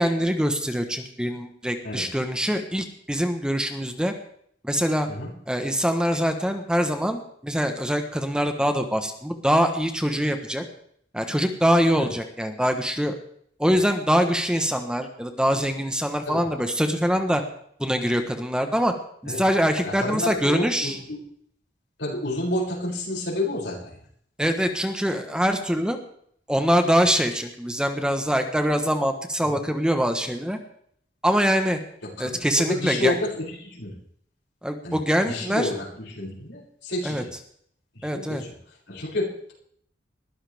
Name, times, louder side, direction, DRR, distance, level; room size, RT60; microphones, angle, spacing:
voice 1, 0.0-4.1 4.6-5.1 5.5-10.6 11.1-13.1 13.6-17.4 17.8-18.9 19.2-21.0 24.4-26.0 26.5-30.6 31.2-31.8 32.2-33.1 34.6-35.7 37.0-37.2 38.0-38.4, equal, 5° right, 6 dB, 1.1 m, -24 dB
voice 2, 19.8-21.2 22.0-24.0 29.4-29.6 32.2-33.9 34.8-37.3 37.9-38.5 38.9-39.5, left 1 dB, 90° left, -4 dB, 6.6 m, -30 dB
21.0 x 14.5 x 3.5 m, 0.66 s
head